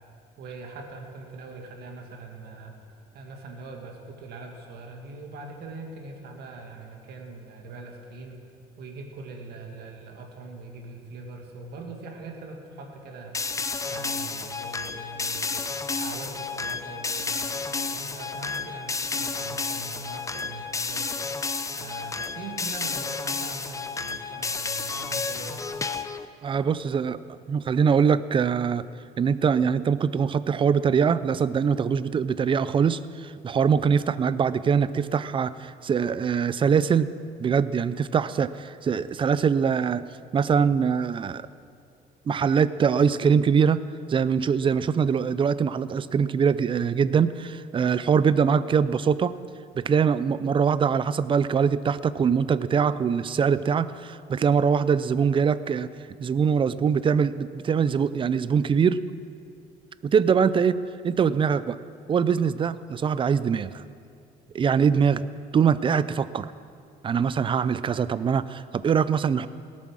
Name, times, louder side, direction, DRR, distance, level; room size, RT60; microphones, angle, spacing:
voice 1, 0.4-2.8 3.1-8.4 8.8-13.4 13.9-15.7 16.0-21.1 21.7-25.7, right 3 dB, 70° right, 2 dB, 2.1 m, -41 dB
sound 1, 13.3-26.2, left 4 dB, 20° left, 0.6 m, -31 dB
voice 2, 26.4-27.2 27.5-28.8 29.2-37.1 37.4-40.0 40.3-41.4 42.3-43.8 44.1-49.4 49.8-55.9 56.2-59.0 60.0-61.8 62.1-63.8 64.5-65.2 65.5-66.5 67.0-69.5, right 6 dB, 30° right, 15 dB, 0.5 m, -23 dB
18.0 x 8.5 x 6.2 m, 2.4 s
cardioid pair, 110°, 17 cm